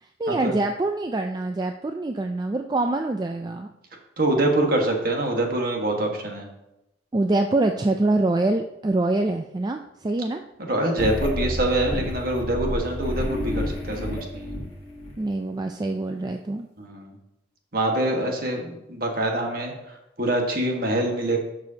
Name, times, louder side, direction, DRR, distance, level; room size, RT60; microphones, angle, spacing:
voice 1, 0.0-3.7 7.1-10.4 15.2-16.7, right 2 dB, 20° right, 5 dB, 0.3 m, -25 dB
voice 2, 4.2-6.5 10.7-14.5 16.8-17.1 17.7-21.4, right 1 dB, 50° right, 1 dB, 1.5 m, -25 dB
sound 1, 11.0-15.1, left 1 dB, 30° left, 1.5 m, -30 dB
11.5 x 6.2 x 2.8 m, 0.87 s
head